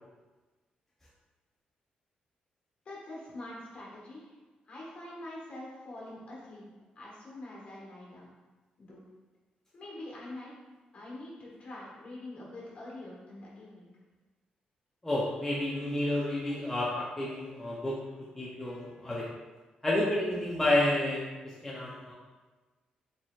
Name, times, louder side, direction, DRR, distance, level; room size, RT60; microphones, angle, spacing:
voice 1, 2.8-4.3 4.6-6.7 6.9-8.3 8.8-9.0 9.7-10.5 10.9-13.9, left 1 dB, 45° left, -5 dB, 1.4 m, -45 dB
voice 2, 15.0-18.0 18.4-19.3 19.8-22.1, left 1 dB, 10° left, -6 dB, 0.5 m, -30 dB
4.0 x 3.9 x 2.4 m, 1.3 s
cardioid pair, 130°, 3 cm